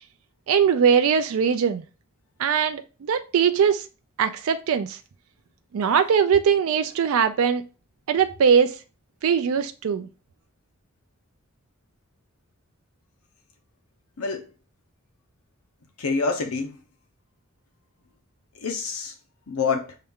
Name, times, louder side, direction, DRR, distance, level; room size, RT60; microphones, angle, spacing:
voice 1, 0.5-1.8 2.4-3.8 4.2-5.0 5.7-7.6 8.1-8.8 9.2-10.1, right 7 dB, 70° right, 0.4 m, -21 dB
voice 2, 16.0-16.8 18.6-19.1 19.5-20.0, left 4 dB, 80° left, 0.6 m, -26 dB
6.4 x 2.3 x 3.5 m
head